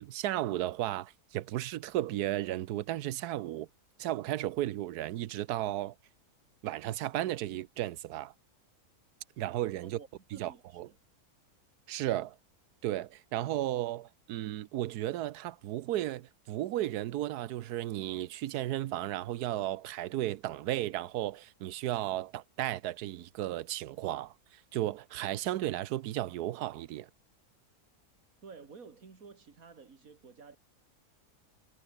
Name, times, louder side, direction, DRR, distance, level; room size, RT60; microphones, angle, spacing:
voice 1, 0.0-3.7 4.0-5.9 6.6-8.3 9.4-10.0 10.3-10.9 11.9-12.3 12.8-24.3 24.7-27.1, right 14 dB, 90° right, 1.2 m, -34 dB
voice 2, 10.3-11.0 28.4-30.6, right 5 dB, 60° right, 2.8 m, -52 dB
omnidirectional pair, 1.6 m